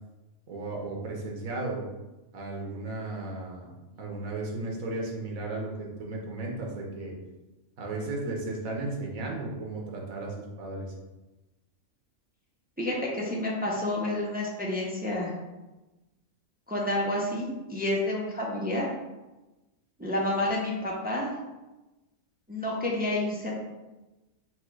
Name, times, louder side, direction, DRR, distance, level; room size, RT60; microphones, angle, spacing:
voice 1, 0.5-1.8 2.3-3.7 4.0-7.1 7.8-10.9, right 2 dB, 85° right, -1 dB, 1.4 m, -35 dB
voice 2, 12.8-15.3 16.7-18.9 20.0-21.3 22.5-23.6, left 1 dB, 15° right, -3 dB, 0.4 m, -29 dB
4.4 x 2.3 x 4.6 m, 1.1 s
omnidirectional pair, 1.4 m